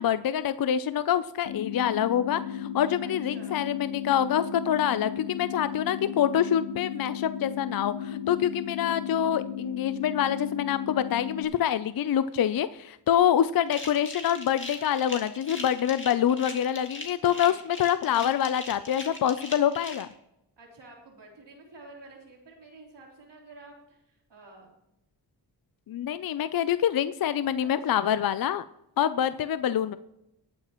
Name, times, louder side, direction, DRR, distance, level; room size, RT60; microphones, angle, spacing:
voice 1, 0.0-20.1 25.9-28.6 29.0-30.0, left 10 dB, 55° left, 14 dB, 0.5 m, -26 dB
sound 1, 1.5-11.5, left 8 dB, 85° left, 1.0 m, -35 dB
voice 2, 3.0-3.6 17.2-17.6 20.6-24.8 27.6-28.1, right 2 dB, 70° right, -1 dB, 3.6 m, -50 dB
sound 2, 13.7-20.0, left 2 dB, 25° left, 2.3 m, -40 dB
20.0 x 8.8 x 3.0 m, 0.85 s
wide cardioid pair, 90°, 43 cm